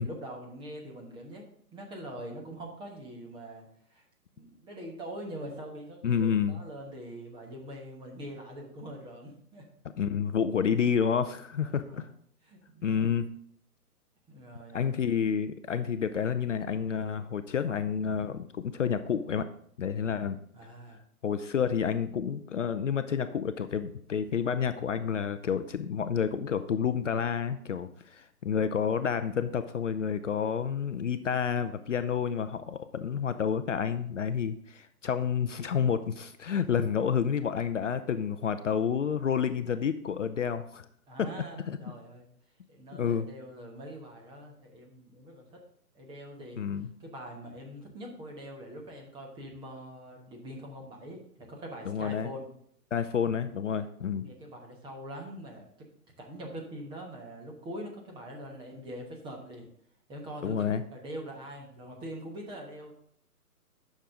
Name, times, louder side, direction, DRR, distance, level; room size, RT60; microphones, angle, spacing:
voice 1, 0.0-1.4 1.7-4.0 4.3-9.6 11.6-12.1 12.4-13.1 14.3-14.9 20.5-21.0 41.1-42.3 42.7-45.6 45.9-46.6 47.0-52.5 54.1-55.6 56.2-59.7 60.1-62.9, equal, 10° right, 0 dB, 1.2 m, -43 dB
voice 2, 6.0-6.6 10.0-12.1 12.8-13.3 14.7-19.5 19.8-20.4 21.2-40.8 41.2-41.3 41.7-41.8 43.0-43.3 46.6-46.9 51.9-52.3 52.9-54.2 60.4-60.8, left 7 dB, 50° left, 11 dB, 0.6 m, -29 dB
10.0 x 6.5 x 3.8 m, 0.66 s
figure-of-eight pair, 130°, 47 cm